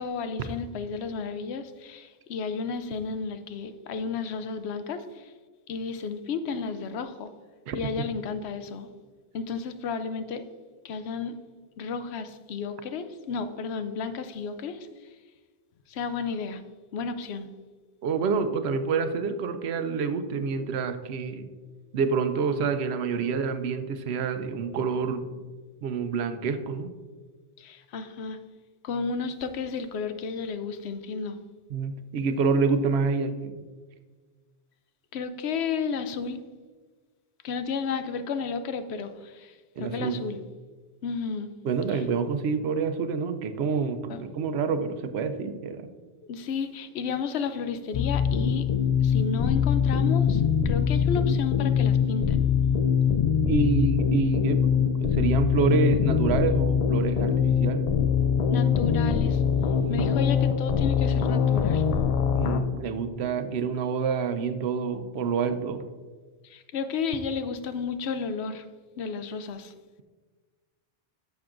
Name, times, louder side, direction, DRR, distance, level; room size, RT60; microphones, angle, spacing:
voice 1, 0.0-5.3 5.7-7.3 7.7-8.9 9.3-10.4 10.8-11.3 11.8-14.9 15.9-16.6 16.9-17.5 27.6-28.4 28.8-31.4 35.1-36.4 37.4-40.4 41.0-41.5 41.9-42.0 44.1-44.2 46.3-48.7 49.0-52.4 58.5-59.4 59.9-61.9 66.4-68.6 69.0-69.7, left 5 dB, 85° left, 10 dB, 0.9 m, -32 dB
voice 2, 18.0-21.5 21.9-25.4 25.8-26.9 31.7-33.6 39.8-40.2 41.6-45.9 53.5-58.0 59.8-60.2 62.3-65.8, right 5 dB, 85° right, 9 dB, 0.9 m, -27 dB
sound 1, 47.9-62.6, left 7 dB, 55° left, 0.4 m, -23 dB
10.5 x 6.8 x 2.5 m, 1.4 s
omnidirectional pair, 1.1 m